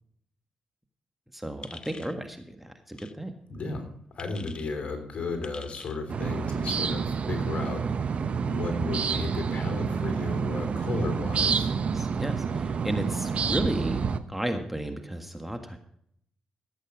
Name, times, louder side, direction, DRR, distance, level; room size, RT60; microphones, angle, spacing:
voice 1, 1.3-3.3 11.9-15.8, right 1 dB, 5° right, 5 dB, 1.7 m, -33 dB
sound 1, 1.6-2.2 2.9-3.1 4.2-4.7 5.4-6.0, left 3 dB, 35° left, 0.9 m, -45 dB
voice 2, 3.5-3.9 4.1-7.8 8.5-11.7, left 3 dB, 55° left, 5 dB, 3.4 m, -34 dB
sound 2, 6.1-14.2, right 6 dB, 55° right, 0.8 m, -28 dB
15.0 x 8.2 x 4.9 m, 0.69 s
hypercardioid pair, 45°, 2 cm